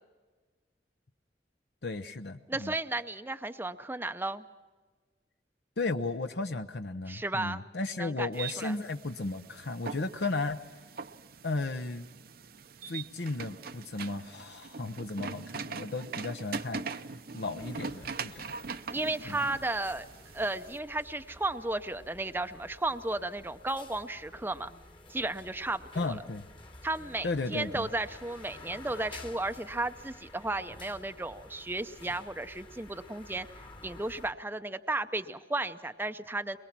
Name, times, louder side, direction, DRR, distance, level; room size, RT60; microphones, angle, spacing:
voice 1, 1.8-2.7 5.8-10.6 11.4-12.1 12.9-17.1 17.3-18.5 19.3-19.4 26.0-26.5 27.2-27.9, left 3 dB, 70° left, 7 dB, 0.8 m, -35 dB
voice 2, 2.5-4.4 7.1-7.6 8.0-8.8 18.9-20.1 20.3-24.7 25.1-26.2 26.8-33.5 33.8-36.6, right 2 dB, 10° right, 9 dB, 0.6 m, -34 dB
sound 1, 8.3-20.8, right 5 dB, 55° right, 0.7 m, -42 dB
sound 2, 17.6-34.3, left 2 dB, 30° left, 1.3 m, -51 dB
22.5 x 22.0 x 6.0 m, 1.3 s
head